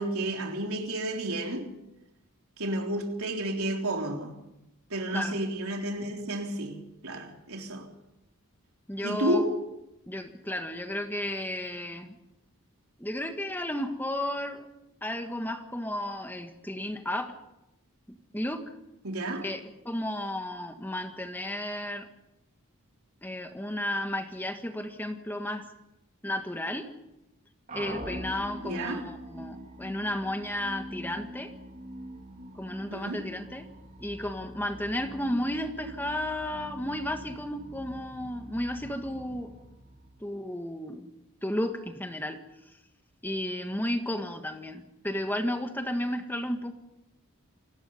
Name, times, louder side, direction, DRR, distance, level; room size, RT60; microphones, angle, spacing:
voice 1, 0.0-1.7 2.6-4.4 4.9-7.9 9.0-9.6 19.0-19.4 28.6-29.0 32.9-33.2, right 1 dB, 80° right, 3.5 m, -31 dB
voice 2, 8.9-9.4 10.1-12.2 13.0-14.6 15.0-17.3 18.1-18.7 19.4-22.1 23.2-25.7 26.2-26.9 27.7-31.5 32.5-33.7 34.0-39.5 40.2-41.1 41.4-42.4 43.2-46.7, left 1 dB, 10° left, 1.6 m, -33 dB
sound 1, 27.7-40.6, right 1 dB, 35° right, 4.3 m, -44 dB
28.5 x 19.5 x 5.5 m
head